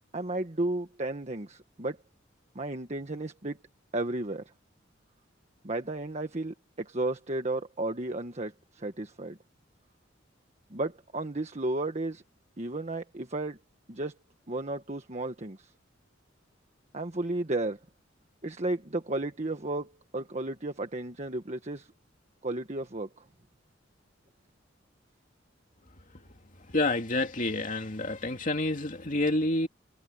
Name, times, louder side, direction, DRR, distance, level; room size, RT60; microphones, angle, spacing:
voice 1, 0.1-2.0 2.5-3.6 3.9-4.4 5.6-9.4 10.7-12.2 12.6-13.6 13.9-14.2 14.5-15.7 16.9-17.8 18.4-21.9 22.4-23.2, right 2 dB, 35° right, 1.4 m, -33 dB
voice 2, 26.7-29.7, left 2 dB, 45° left, 2.6 m, -28 dB
head